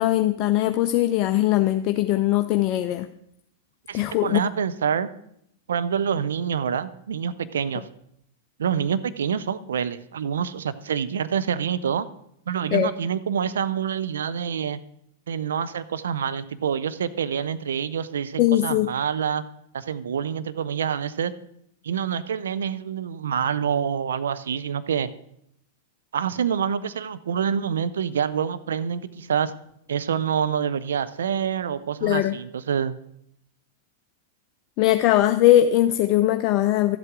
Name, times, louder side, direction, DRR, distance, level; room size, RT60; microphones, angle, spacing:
voice 1, 0.0-3.1 3.9-4.4 12.7-12.9 18.4-18.9 32.0-32.4 34.8-37.0, left 14 dB, 45° left, 8 dB, 0.4 m, -20 dB
voice 2, 3.9-5.1 5.7-7.8 8.6-12.1 12.5-14.8 15.3-19.4 19.7-21.3 21.8-25.1 26.1-29.5 29.9-33.0, right 7 dB, 75° right, 14 dB, 0.5 m, -26 dB
12.0 x 8.1 x 3.7 m, 0.73 s
hypercardioid pair, 100°, 0 cm